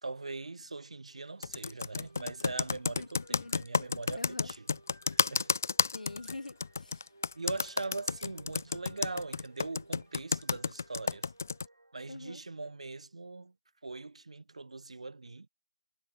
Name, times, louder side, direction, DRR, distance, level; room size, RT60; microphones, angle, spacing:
voice 1, 0.0-4.7 5.0-5.5 7.3-11.3 11.9-13.6 13.8-15.5, right 3 dB, 50° right, 4.1 m, -41 dB
sound 1, 0.9-13.0, right 2 dB, 85° right, 3.9 m, -61 dB
Computer keyboard, 1.4-11.7, left 5 dB, 20° left, 0.3 m, -31 dB
voice 2, 3.0-3.6 4.2-4.5 5.9-7.0 12.1-12.4, left 2 dB, 70° left, 1.7 m, -45 dB
figure-of-eight pair, 175°, 4 cm